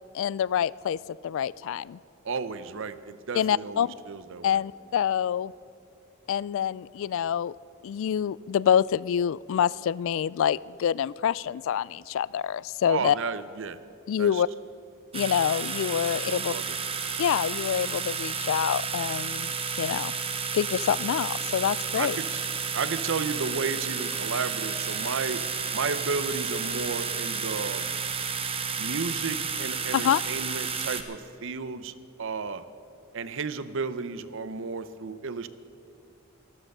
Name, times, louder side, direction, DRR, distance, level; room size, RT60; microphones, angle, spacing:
voice 1, 0.1-2.0 3.3-3.9 4.4-5.5 6.3-7.6 7.8-13.2 14.1-14.5 15.1-16.5 17.2-19.5 19.8-20.1 20.5-22.2 29.9-30.2, left 9 dB, 65° left, 22 dB, 0.3 m, -26 dB
voice 2, 2.2-4.6 12.9-13.8 14.2-14.4 16.2-16.8 22.0-22.4 22.7-28.0 28.8-32.6 33.1-35.5, right 5 dB, 65° right, 13 dB, 0.7 m, -33 dB
sound 1, 15.1-31.0, right 6 dB, 30° right, 1.0 m, -31 dB
13.0 x 13.0 x 6.7 m, 2.6 s
head